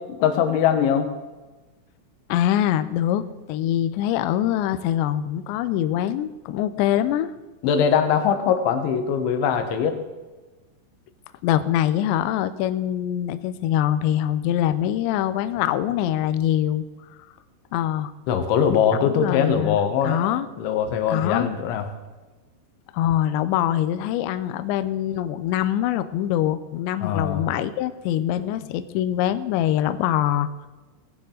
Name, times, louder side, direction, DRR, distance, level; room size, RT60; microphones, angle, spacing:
voice 1, 0.2-1.1 7.6-10.0 18.3-20.2 20.6-21.9 27.0-27.5, left 7 dB, 70° left, 6 dB, 3.4 m, -21 dB
voice 2, 2.3-7.3 11.4-16.8 17.7-18.1 19.0-19.8 20.0-20.5 21.1-21.5 22.9-30.7, left 11 dB, 85° left, 11 dB, 2.5 m, -24 dB
19.0 x 12.0 x 3.9 m, 1.2 s
omnidirectional pair, 6.0 m